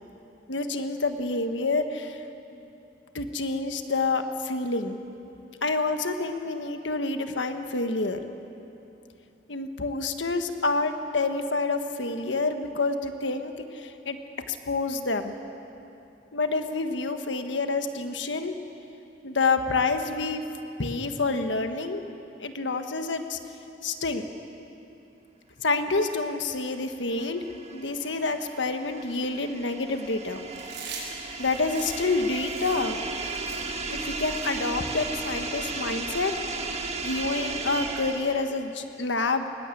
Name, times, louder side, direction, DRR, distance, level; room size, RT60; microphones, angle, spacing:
voice 1, 0.5-2.2 3.1-5.0 5.6-8.2 9.5-14.2 14.5-15.3 16.3-18.5 19.2-20.4 20.8-22.0 22.4-23.4 23.8-24.3 25.6-27.5 27.7-30.4 31.4-33.0 33.9-36.3 36.6-36.8 37.0-39.5, left 3 dB, 90° left, 7 dB, 1.5 m, -28 dB
sound 1, 26.7-38.6, right 3 dB, 35° right, 1.5 m, -35 dB
Chewing mastication, 30.5-36.0, right 5 dB, 75° right, 6.6 m, -43 dB
21.5 x 19.5 x 8.5 m, 2.8 s
head